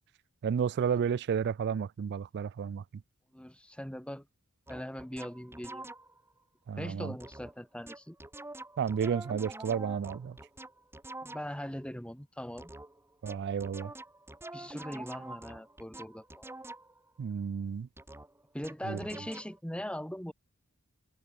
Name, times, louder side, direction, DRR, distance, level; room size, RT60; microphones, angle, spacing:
voice 1, 0.4-2.8 6.7-7.1 8.8-10.4 13.2-13.9 17.2-17.9 18.9-19.0, right 7 dB, 50° right, 0.3 m, -32 dB
voice 2, 3.3-4.3 4.7-5.9 6.8-8.2 11.2-12.7 14.5-16.5 18.5-20.3, equal, 5° left, 2.7 m, -40 dB
sound 1, 4.7-6.3 7.2-7.5 7.9-11.7 12.6-17.1 18.0-19.6, right 2 dB, 10° right, 1.8 m, -46 dB
head